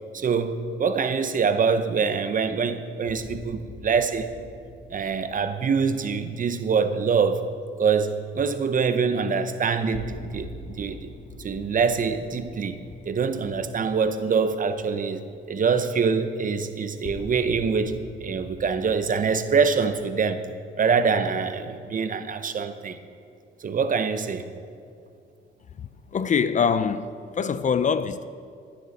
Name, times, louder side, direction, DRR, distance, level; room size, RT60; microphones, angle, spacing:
voice 1, 0.1-4.3 4.9-7.4 7.8-11.1 11.4-12.8 13.1-20.4 20.8-23.0 23.6-24.5, right 5 dB, 40° right, 0.8 m, -24 dB
sound 1, 3.0-7.2 9.9-14.3 14.6-14.7 17.0-20.1, left 2 dB, 60° left, 1.8 m, -43 dB
voice 2, 26.1-27.1 27.4-28.3, left 6 dB, 40° left, 0.5 m, -23 dB
15.0 x 10.5 x 4.2 m
cardioid pair, 90°, 20 cm